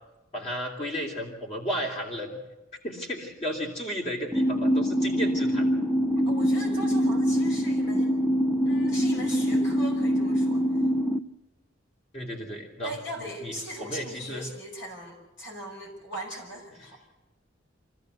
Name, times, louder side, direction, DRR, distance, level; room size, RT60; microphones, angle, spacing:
voice 1, 0.3-2.4 2.8-5.7 12.1-13.0 13.4-13.5 13.9-14.5, equal, 35° left, -2 dB, 3.0 m, -33 dB
sound 1, 4.3-11.2, equal, 5° right, 0.6 m, -24 dB
voice 2, 6.3-8.1 8.7-10.8 12.8-17.0, equal, 65° left, 2 dB, 5.7 m, -39 dB
24.5 x 15.0 x 8.0 m, 1.1 s
head